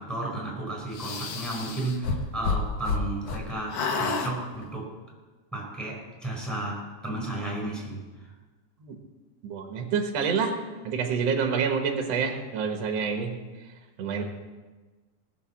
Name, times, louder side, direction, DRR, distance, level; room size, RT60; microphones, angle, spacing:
voice 1, 0.0-4.9 5.5-8.3, right 2 dB, ahead, -2 dB, 4.3 m, -33 dB
sound 1, 0.9-3.4 3.7-4.3, left 4 dB, 70° left, 1.5 m, -29 dB
voice 2, 9.4-10.5 10.8-13.4 14.0-14.2, right 6 dB, 60° right, 3 dB, 1.7 m, -27 dB
19.5 x 6.8 x 7.1 m, 1.3 s
omnidirectional pair, 4.4 m